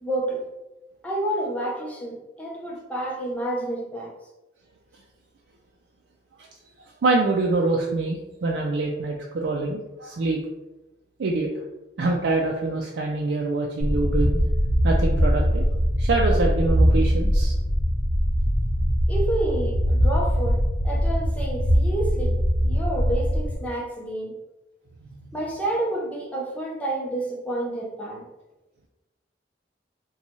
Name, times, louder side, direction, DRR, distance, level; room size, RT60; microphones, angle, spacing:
voice 1, 0.0-0.4 1.0-4.1 19.1-24.3 25.3-28.3, right 1 dB, 10° left, -3 dB, 0.6 m, -29 dB
voice 2, 7.0-10.4 11.2-11.5 12.0-14.4 14.8-15.6 16.0-17.5, right 3 dB, 90° right, 0 dB, 0.4 m, -25 dB
sound 1, 13.8-23.6, equal, 40° left, 0.8 m, -22 dB
3.9 x 2.3 x 3.0 m, 1.0 s
head